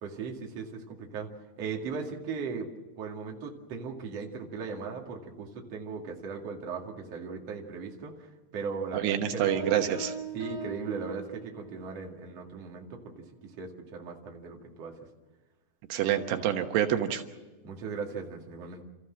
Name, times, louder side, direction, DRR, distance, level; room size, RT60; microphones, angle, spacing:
voice 1, 0.0-1.3 1.6-2.7 3.0-8.3 8.5-9.8 10.3-13.0 13.4-14.9 17.6-18.8, right 5 dB, 45° right, 1 dB, 3.0 m, -38 dB
voice 2, 8.9-10.1 15.9-17.2, right 10 dB, 85° right, 6 dB, 3.3 m, -27 dB
Piano, 9.4-11.8, right 3 dB, 70° left, 7.2 m, -39 dB
29.5 x 14.5 x 7.6 m, 1.2 s
omnidirectional pair, 4.7 m